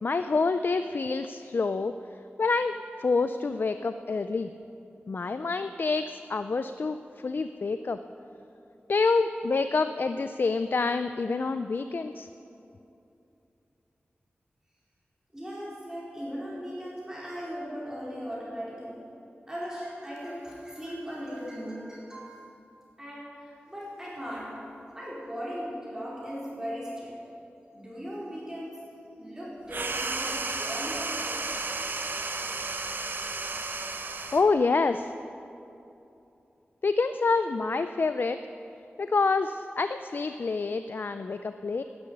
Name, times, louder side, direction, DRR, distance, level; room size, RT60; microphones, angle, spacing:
voice 1, 0.0-1.9 2.4-4.5 5.1-8.0 8.9-12.3 34.3-35.1 36.8-38.4 39.0-41.8, left 4 dB, 55° left, 10 dB, 0.4 m, -27 dB
voice 2, 15.3-19.0 19.5-22.3 23.0-24.5 24.9-27.1 27.7-28.8 29.2-31.4, equal, 15° right, -7 dB, 4.5 m, -38 dB
sound 1, 29.7-34.5, right 3 dB, 55° right, 1.0 m, -33 dB
12.0 x 10.5 x 9.4 m, 2.8 s
wide cardioid pair, 95°, 4 cm